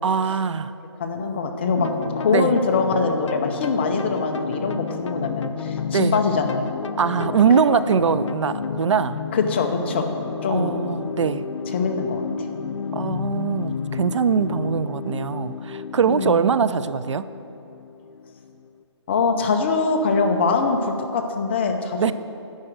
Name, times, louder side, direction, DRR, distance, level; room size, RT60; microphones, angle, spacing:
voice 1, 0.0-0.7 2.3-2.5 5.9-6.2 7.0-9.2 10.5-11.4 12.9-17.3 22.0-22.1, right 6 dB, 80° right, 15 dB, 0.4 m, -22 dB
voice 2, 1.0-1.9 2.2-6.7 7.6-7.9 9.3-10.1 10.4-10.8 11.7-12.5 16.1-16.4 19.1-22.1, left 4 dB, 25° left, 4 dB, 0.6 m, -23 dB
sound 1, 1.7-18.7, left 6 dB, 85° left, 0.5 m, -31 dB
10.5 x 5.0 x 7.8 m, 2.7 s
hypercardioid pair, 165°, 15 cm